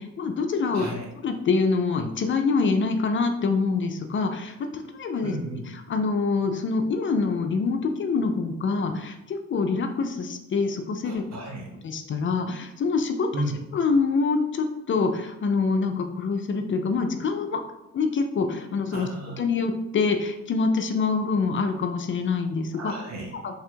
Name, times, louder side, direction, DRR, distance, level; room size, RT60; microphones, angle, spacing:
voice 1, 0.0-0.9 1.2-5.3 5.9-11.2 11.8-13.3 13.7-17.6 17.9-19.1 19.4-22.9 23.4-23.6, left 4 dB, 40° left, 6 dB, 0.4 m, -25 dB
voice 2, 0.7-1.1 5.2-5.7 11.0-11.6 13.3-13.5 18.9-19.4 22.7-23.3, right 1 dB, 60° right, 0 dB, 1.1 m, -33 dB
3.4 x 2.4 x 4.4 m, 0.92 s
cardioid pair, 90°, 30 cm